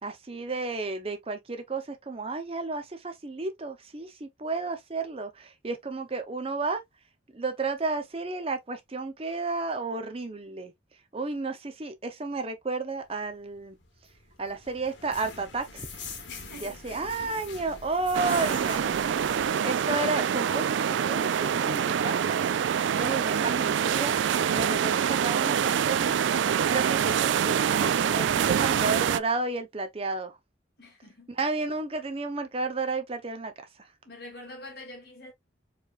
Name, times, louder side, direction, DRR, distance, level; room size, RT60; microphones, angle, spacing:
voice 1, 0.0-6.8 7.3-10.7 11.1-13.8 14.4-15.9 16.6-18.8 19.6-22.5 22.9-24.2 24.5-26.1 26.6-30.4 31.3-33.5 33.8-33.9, right 3 dB, 30° right, 0.6 m, -32 dB
sound 1, 13.6-19.5, left 4 dB, 75° left, 1.4 m, -43 dB
voice 2, 16.3-17.3 30.8-31.3 34.0-35.3, left 1 dB, 55° left, 2.0 m, -45 dB
sound 2, 18.1-29.2, right 8 dB, 75° right, 0.3 m, -25 dB
4.6 x 3.2 x 2.4 m
head